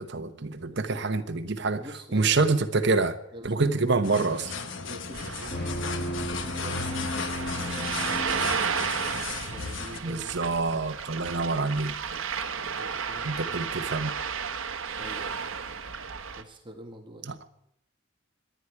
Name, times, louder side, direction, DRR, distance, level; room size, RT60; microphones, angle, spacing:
voice 1, 0.0-1.8 2.1-3.2 3.4-4.5 10.0-11.9 13.2-14.1 17.3-17.4, right 3 dB, 60° right, 8 dB, 1.1 m, -26 dB
voice 2, 0.7-1.2 1.6-2.4 3.3-3.8 4.1-4.3 4.9-8.5 9.5-10.4 12.8-14.0 15.0-15.5 16.4-17.4, right 1 dB, 25° right, 4 dB, 1.7 m, -46 dB
sound 1, 4.0-10.0, left 5 dB, 65° left, 1.2 m, -35 dB
Ocean, 5.1-16.4, right 6 dB, 80° right, 1.1 m, -33 dB
sound 2, 5.5-9.3, left 1 dB, 45° left, 1.8 m, -35 dB
26.0 x 10.5 x 4.7 m, 0.78 s
head